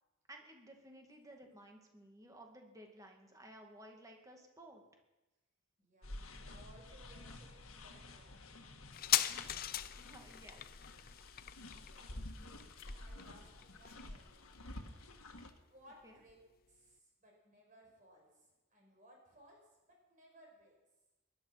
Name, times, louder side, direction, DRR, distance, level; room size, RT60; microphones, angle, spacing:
voice 1, 0.3-4.8 9.9-10.7 16.0-16.2, right 1 dB, 15° right, 2 dB, 2.1 m, -56 dB
voice 2, 5.8-8.6 11.8-14.8 15.6-16.4 16.7-20.8, equal, 40° right, 0 dB, 5.4 m, -63 dB
sound 1, 6.0-15.5, left 1 dB, 90° left, 1.7 m, -51 dB
sound 2, 8.9-16.0 16.3-16.4, left 12 dB, 45° left, 0.5 m, -40 dB
21.0 x 11.5 x 5.8 m, 1.1 s
head